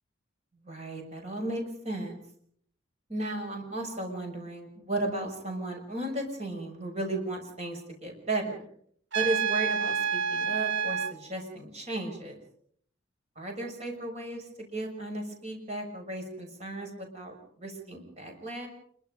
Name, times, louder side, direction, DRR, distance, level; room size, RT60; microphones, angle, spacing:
voice 1, 0.6-2.1 3.1-8.6 9.1-12.4 13.3-18.7, right 2 dB, 35° right, 3 dB, 6.5 m, -35 dB
Trumpet, 9.1-11.1, right 7 dB, 65° right, 1.7 m, -28 dB
27.0 x 23.5 x 5.3 m, 0.63 s
head